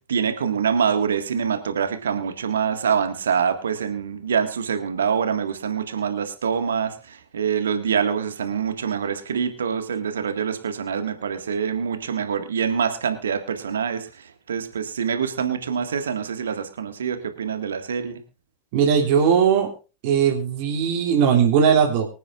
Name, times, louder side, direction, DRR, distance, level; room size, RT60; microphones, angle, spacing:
voice 1, 0.1-14.1 14.5-18.2, right 7 dB, 70° right, 8 dB, 1.8 m, -25 dB
voice 2, 18.7-19.7 20.0-22.1, right 7 dB, 50° right, 1 dB, 2.8 m, -19 dB
24.0 x 9.2 x 2.5 m, 0.31 s
figure-of-eight pair, 90°, 0 cm